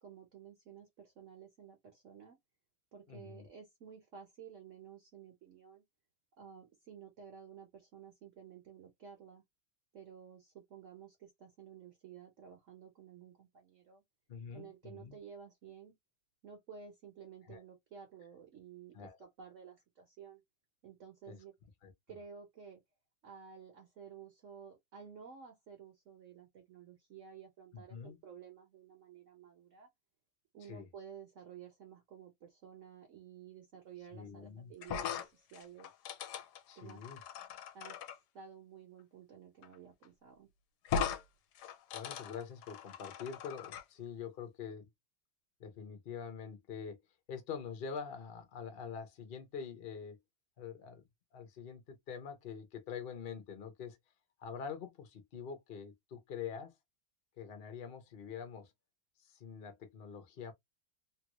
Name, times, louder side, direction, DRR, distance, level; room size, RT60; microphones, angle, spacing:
voice 1, 0.0-2.4 2.9-5.8 6.4-9.4 9.9-14.0 14.5-15.9 16.4-20.4 20.8-21.5 22.1-22.8 23.2-28.0 28.2-29.9 30.5-35.9 36.8-37.0 37.7-38.0 38.3-40.5, right 7 dB, 50° right, 1.1 m, -53 dB
voice 2, 3.1-3.5 14.3-15.2 17.5-17.6 18.9-19.2 21.3-21.4 21.8-21.9 27.7-28.2 30.6-30.9 34.1-34.7 36.7-37.2 41.9-44.9 45.6-47.0 47.3-50.2 50.6-51.0 51.3-54.0 54.4-56.7 57.4-58.7 59.2-60.5, left 6 dB, 45° left, 0.8 m, -45 dB
sound 1, 34.8-38.2 39.6-39.8 40.0-40.1 40.8-41.2 41.5-43.8, left 7 dB, 70° left, 1.1 m, -39 dB
3.1 x 2.5 x 2.9 m
omnidirectional pair, 2.0 m